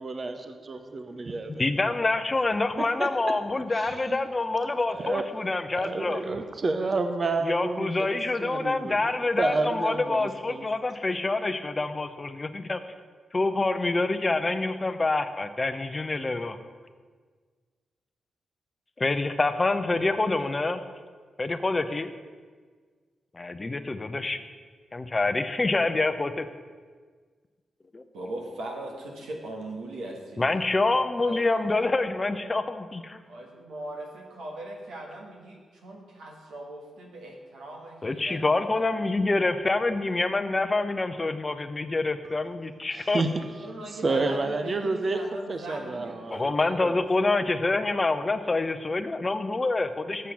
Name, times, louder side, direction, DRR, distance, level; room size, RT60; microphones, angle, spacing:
voice 1, 0.0-0.3 0.7-1.7 3.0-3.1 3.7-4.2 5.0-5.2 5.8-9.0 9.4-10.6 42.9-43.3 43.9-45.2 45.5-46.9, right 3 dB, 45° right, 7 dB, 0.7 m, -30 dB
voice 2, 1.5-6.2 7.4-12.8 13.3-16.6 19.0-20.8 21.4-22.1 23.3-24.4 24.9-26.5 27.9-28.0 30.4-33.2 38.0-43.2 46.3-50.3, left 3 dB, 30° left, 10 dB, 0.6 m, -26 dB
voice 3, 28.1-30.5 31.2-32.3 33.3-38.8 43.2-46.3, right 1 dB, 90° right, 0 dB, 1.5 m, -40 dB
7.5 x 6.8 x 5.8 m, 1.6 s
cardioid pair, 65°, 0 cm